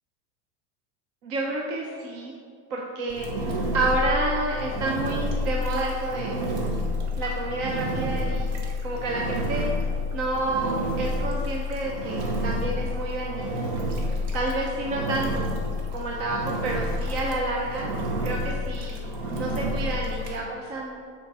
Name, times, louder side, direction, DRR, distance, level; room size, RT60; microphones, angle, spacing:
voice 1, 1.2-2.3 2.7-3.5 3.7-6.4 7.2-8.5 8.8-9.7 10.1-13.7 14.3-15.5 15.9-17.9 18.2-19.1 19.4-21.0, right 2 dB, 40° right, -2 dB, 0.8 m, -29 dB
Engine, 3.1-20.4, left 1 dB, 60° right, 1.3 m, -29 dB
8.5 x 4.5 x 4.3 m, 2.2 s
supercardioid pair, 145°, 37 cm